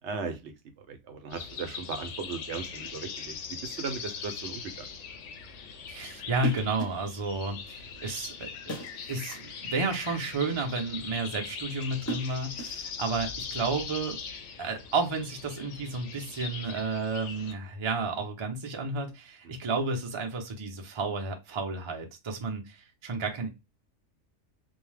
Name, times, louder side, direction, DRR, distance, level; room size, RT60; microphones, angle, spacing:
voice 1, 0.0-3.4 3.6-4.9 19.4-19.6, right 5 dB, 65° right, 6 dB, 0.8 m, -37 dB
sound 1, 1.3-17.5, left 6 dB, 70° left, 0.9 m, -41 dB
voice 2, 5.9-8.8 9.1-14.2 14.6-23.5, right 3 dB, 35° right, 2 dB, 0.4 m, -32 dB
sound 2, 6.4-7.1 8.7-9.5 11.8-12.9, right 2 dB, 15° left, 0.7 m, -37 dB
2.6 x 2.1 x 3.2 m, 0.24 s
omnidirectional pair, 1.4 m